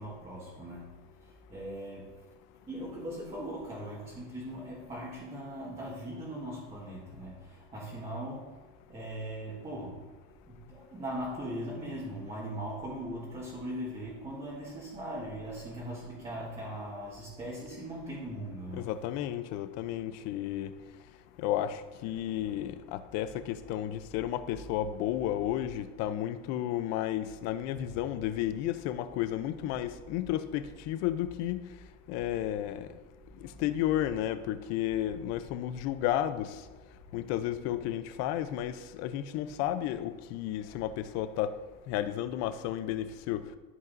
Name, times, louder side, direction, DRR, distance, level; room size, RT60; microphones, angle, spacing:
voice 1, 0.0-2.1 2.7-8.6 8.9-10.1 10.5-18.9 33.5-33.6, right 1 dB, 20° right, -6 dB, 1.7 m, -40 dB
voice 2, 18.7-20.7 21.4-31.6 32.1-32.9 33.4-36.6 37.1-41.5 41.9-43.4, left 12 dB, 55° left, 12 dB, 0.6 m, -32 dB
14.0 x 5.5 x 2.6 m, 1.3 s
cardioid pair, 145°, 31 cm